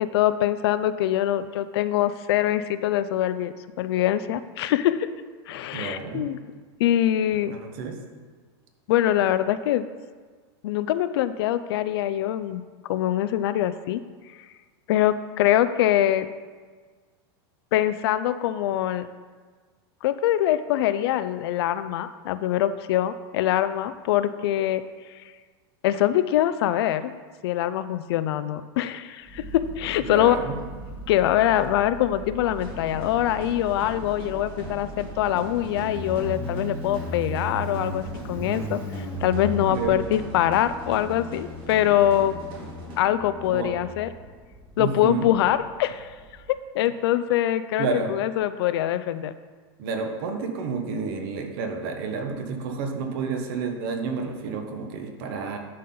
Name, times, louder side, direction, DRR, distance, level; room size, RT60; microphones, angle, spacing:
voice 1, 0.0-5.1 5.5-6.4 6.8-7.6 8.9-9.8 10.6-12.6 12.9-14.0 14.9-16.3 17.7-19.1 20.0-24.8 25.8-27.1 27.4-30.4 31.1-38.8 39.2-42.4 43.0-44.1 44.8-46.1 46.7-49.3, left 12 dB, 70° left, 13 dB, 0.4 m, -23 dB
voice 2, 5.7-6.3 7.5-8.0 30.0-30.6 39.7-40.0 43.5-43.7 44.8-45.3 47.8-48.1 49.8-55.6, right 5 dB, 55° right, 4 dB, 1.2 m, -30 dB
Motorcycle, 29.3-46.5, right 1 dB, 10° right, 1.2 m, -37 dB
sound 1, 32.5-43.0, right 1 dB, 40° right, 1.8 m, -42 dB
11.0 x 4.2 x 3.9 m, 1.5 s
supercardioid pair, 145°, 14 cm